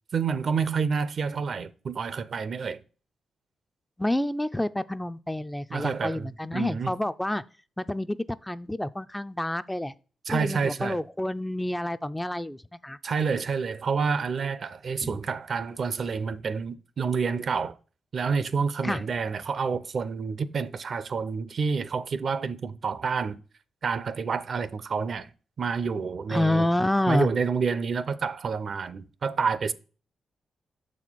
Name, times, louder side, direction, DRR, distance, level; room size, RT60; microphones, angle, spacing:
voice 1, 0.1-2.8 5.7-6.9 10.3-11.0 13.0-17.8 18.1-23.4 23.8-25.3 25.6-26.7 27.1-29.7, right 5 dB, 60° right, 0.5 m, -28 dB
voice 2, 4.0-7.4 7.8-8.2 8.4-9.9 10.3-13.0 15.0-15.2 18.8-19.0 26.3-27.3, left 1 dB, 10° left, 0.3 m, -28 dB
7.0 x 4.2 x 4.5 m
cardioid pair, 75°, 0 cm